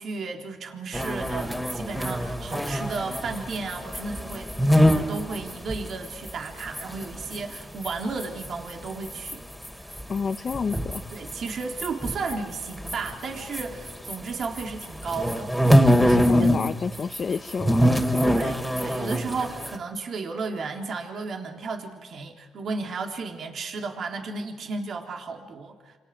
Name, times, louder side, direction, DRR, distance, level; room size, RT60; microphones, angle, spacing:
voice 1, 0.0-4.5 4.8-9.4 11.1-15.8 16.1-16.5 16.8-16.9 18.2-26.0, right 4 dB, 60° right, 2 dB, 3.7 m, -34 dB
sound 1, 0.9-7.9 8.2-14.2 14.4-16.7 16.9-19.8, equal, ahead, 2.9 m, -24 dB
voice 2, 10.1-11.0 16.0-18.4, left 5 dB, 45° left, 7 dB, 0.9 m, -30 dB
29.0 x 28.0 x 6.6 m, 1.3 s
cardioid pair, 90°, 0 cm